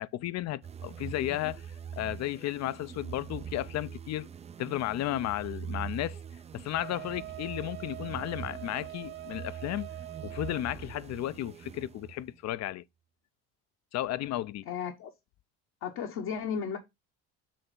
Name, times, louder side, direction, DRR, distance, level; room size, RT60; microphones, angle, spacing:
voice 1, 0.0-1.7 2.0-4.3 4.6-6.2 6.5-9.9 10.2-12.8 13.9-14.7, left 14 dB, 50° left, 0.5 m, -34 dB
sound 1, 0.6-12.4, right 8 dB, 20° right, 0.4 m, -43 dB
Wind instrument woodwind instrument, 6.7-10.7, right 14 dB, 70° right, 1.2 m, -43 dB
voice 2, 14.7-15.1 15.8-16.8, left 7 dB, 70° left, 1.4 m, -34 dB
8.4 x 3.2 x 5.4 m
supercardioid pair, 95°, 36 cm